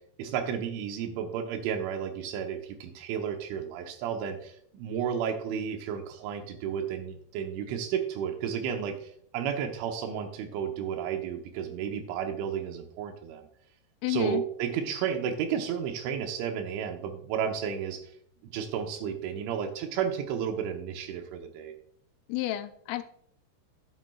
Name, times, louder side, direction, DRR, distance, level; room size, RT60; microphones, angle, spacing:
voice 1, 0.2-13.4 14.1-18.1 18.4-21.8, right 8 dB, 80° right, 5 dB, 3.1 m, -32 dB
voice 2, 14.0-14.4 22.3-23.0, left 16 dB, 85° left, 11 dB, 3.0 m, -30 dB
11.5 x 7.4 x 2.3 m, 0.64 s
omnidirectional pair, 5.7 m